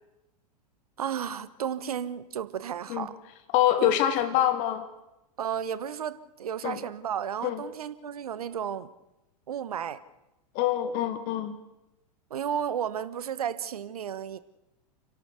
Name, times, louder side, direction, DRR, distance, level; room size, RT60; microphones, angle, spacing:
voice 1, 1.0-3.2 3.8-4.0 5.4-8.9 9.5-10.0 12.3-14.4, right 8 dB, 65° right, 15 dB, 1.2 m, -33 dB
voice 2, 3.5-4.8 6.6-6.8 7.4-7.6 10.5-11.5, left 11 dB, 40° left, 12 dB, 1.4 m, -25 dB
30.0 x 11.5 x 8.2 m, 0.94 s
figure-of-eight pair, 95°, 20 cm